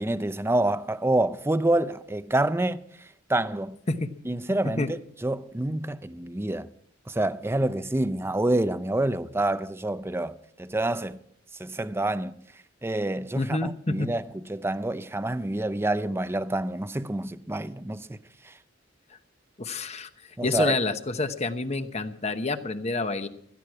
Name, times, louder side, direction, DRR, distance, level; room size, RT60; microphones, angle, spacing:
voice 1, 0.0-2.8 3.3-3.8 4.2-6.7 7.1-11.2 11.6-12.3 12.8-18.2 20.4-20.8, right 1 dB, 10° right, 0.5 m, -27 dB
voice 2, 13.3-14.1 19.6-20.1 20.4-23.3, left 3 dB, 35° left, 1.0 m, -28 dB
17.0 x 14.0 x 4.7 m
head